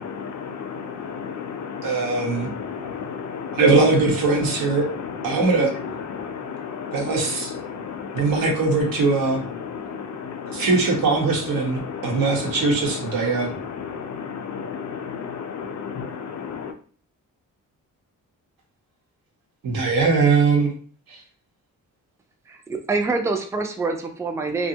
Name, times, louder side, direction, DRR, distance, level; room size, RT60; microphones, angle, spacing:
voice 1, 0.0-16.7, left 6 dB, 55° left, 0.5 m, -33 dB
voice 2, 1.8-2.5 3.5-4.9 5.2-5.7 6.9-7.5 8.1-9.4 10.5-13.5 19.6-20.7 21.1-21.2, right 3 dB, 85° right, 1.0 m, -21 dB
voice 3, 22.5-24.7, right 3 dB, 10° right, 0.3 m, -26 dB
2.5 x 2.2 x 2.7 m
cardioid pair, 115°, 34 cm